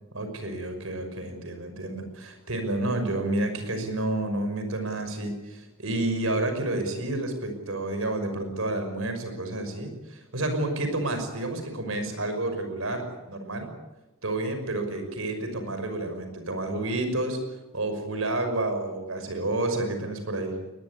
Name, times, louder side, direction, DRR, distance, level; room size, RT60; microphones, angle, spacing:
voice 1, 0.1-13.7 14.2-17.4 17.7-20.5, right 2 dB, 70° right, 7 dB, 5.9 m, -30 dB
21.5 x 20.5 x 9.9 m, 1.1 s
head